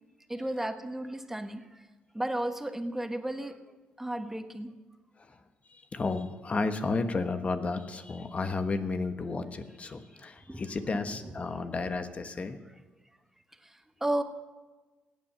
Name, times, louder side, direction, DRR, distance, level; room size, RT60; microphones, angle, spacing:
voice 1, 0.3-1.6 2.1-3.5 4.0-4.7 10.5-10.6 14.0-14.2, right 1 dB, 10° right, 7 dB, 1.5 m, -33 dB
voice 2, 5.7-12.6, left 3 dB, 40° left, 8 dB, 1.4 m, -32 dB
16.5 x 8.9 x 6.7 m, 1.2 s
cardioid pair, 70°, 4 cm